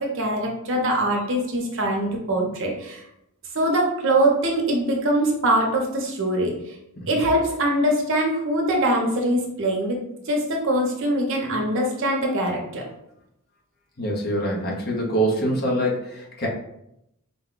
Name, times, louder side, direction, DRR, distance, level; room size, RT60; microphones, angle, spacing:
voice 1, 0.0-3.0 3.5-6.5 7.1-10.0 10.3-12.8, right 1 dB, 60° right, 0 dB, 0.8 m, -23 dB
voice 2, 14.0-16.5, right 1 dB, 45° left, -2 dB, 1.0 m, -24 dB
4.1 x 2.3 x 3.7 m, 0.80 s
head